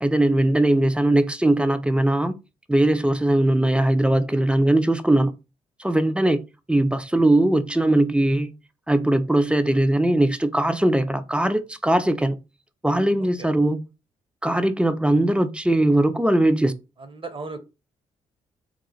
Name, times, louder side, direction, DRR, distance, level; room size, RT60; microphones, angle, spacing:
voice 1, 0.0-2.4 2.7-5.3 5.8-6.4 6.7-8.5 8.9-12.4 12.8-13.8 14.4-16.7, right 1 dB, 5° right, 0.5 m, -20 dB
voice 2, 13.2-13.5 17.0-17.6, right 3 dB, 30° right, 0.9 m, -37 dB
3.0 x 2.4 x 3.8 m
hypercardioid pair, 45°, 17 cm